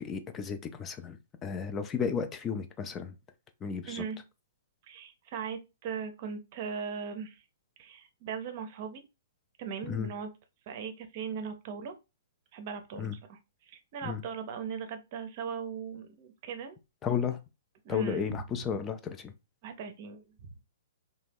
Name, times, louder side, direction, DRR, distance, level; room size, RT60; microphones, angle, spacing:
voice 1, 0.0-3.1 3.6-4.0 9.9-10.1 13.0-13.1 14.0-14.2 17.0-17.4 17.9-19.3, left 7 dB, 20° left, 0.3 m, -33 dB
voice 2, 3.9-4.2 4.9-7.4 7.8-9.0 9.6-10.3 10.7-11.9 12.5-16.8 17.8-18.2 19.6-20.5, right 6 dB, 45° right, 0.6 m, -39 dB
2.8 x 2.2 x 3.3 m
figure-of-eight pair, 115°, 0 cm